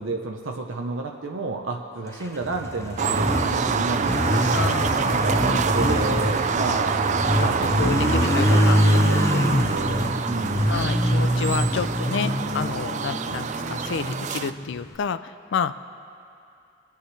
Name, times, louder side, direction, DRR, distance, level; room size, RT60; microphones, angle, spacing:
voice 1, 0.0-4.2 5.1-7.1 7.4-10.7, right 3 dB, 65° right, 2 dB, 0.7 m, -31 dB
Motorcycle, 2.2-14.9, equal, 15° left, 0.6 m, -24 dB
sound 1, 3.0-14.5, right 6 dB, 35° right, 0.3 m, -26 dB
voice 2, 4.5-5.4 7.4-9.0 10.7-15.8, left 6 dB, 60° left, 12 dB, 0.4 m, -30 dB
23.0 x 8.6 x 3.3 m, 2.6 s
head